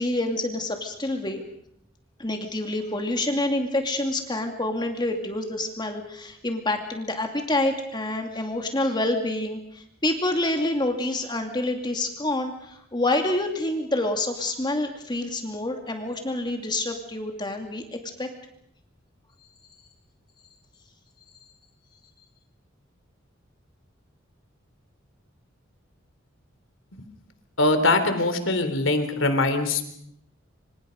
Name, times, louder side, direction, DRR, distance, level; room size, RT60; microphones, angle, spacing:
voice 1, 0.0-1.4 2.2-17.8 18.2-18.3, left 1 dB, 20° left, 4 dB, 2.6 m, -27 dB
voice 2, 27.6-29.8, left 2 dB, 80° left, 8 dB, 3.6 m, -22 dB
26.5 x 26.0 x 5.3 m, 0.70 s
head